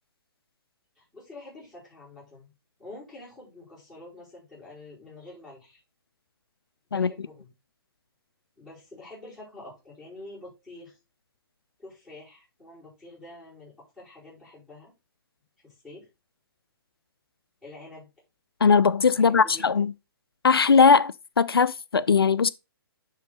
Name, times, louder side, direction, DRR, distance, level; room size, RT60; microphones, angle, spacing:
voice 1, 1.0-2.5 2.8-5.8 6.9-7.5 8.6-11.0 11.8-14.9 15.6-16.1 17.6-18.1 19.1-19.9, left 2 dB, ahead, 5.1 m, -47 dB
voice 2, 18.6-19.9 20.4-22.5, left 5 dB, 75° left, 0.4 m, -19 dB
10.0 x 3.8 x 3.9 m
figure-of-eight pair, 125°, 12 cm